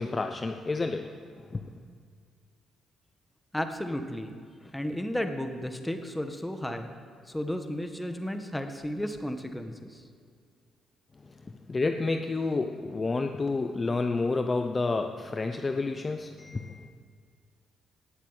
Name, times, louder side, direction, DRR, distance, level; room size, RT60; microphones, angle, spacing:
voice 1, 0.0-1.8 11.2-16.9, left 3 dB, 30° left, 7 dB, 0.8 m, -30 dB
voice 2, 3.5-4.3 4.6-6.9 7.3-10.0, left 1 dB, 5° left, 6 dB, 1.5 m, -33 dB
17.0 x 7.4 x 9.2 m, 2.1 s
cardioid pair, 90°, 0 cm